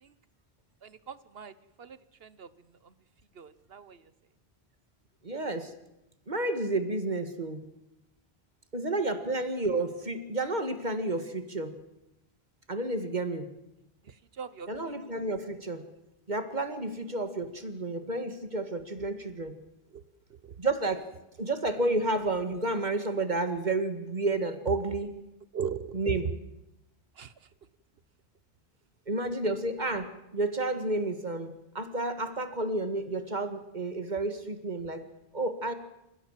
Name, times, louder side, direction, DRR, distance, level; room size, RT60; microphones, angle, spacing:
voice 1, 0.8-2.5 2.8-2.9 3.3-4.0 14.1-14.7 19.0-19.1 19.9-20.0 20.4-20.5 25.5-26.0 27.2-27.3, right 7 dB, 65° right, 16 dB, 1.2 m, -40 dB
voice 2, 5.2-5.7 6.3-7.6 8.7-11.7 12.7-13.5 14.7-15.8 16.3-19.5 20.6-21.0 21.4-25.1 25.9-26.3 29.1-35.0 35.3-35.7, right 2 dB, 45° right, 9 dB, 2.2 m, -31 dB
28.0 x 16.0 x 7.5 m, 0.90 s
omnidirectional pair, 1.1 m